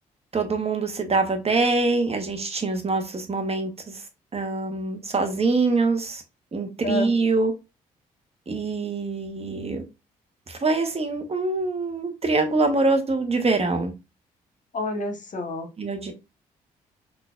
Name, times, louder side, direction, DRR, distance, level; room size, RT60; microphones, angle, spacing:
voice 1, 0.3-4.0 4.3-6.2 6.5-7.5 8.5-9.8 10.5-13.9 15.8-16.1, right 3 dB, 35° right, 1.0 m, -24 dB
voice 2, 14.7-15.7, left 2 dB, 45° left, 1.0 m, -28 dB
3.8 x 2.5 x 2.4 m
hypercardioid pair, 45°, 18 cm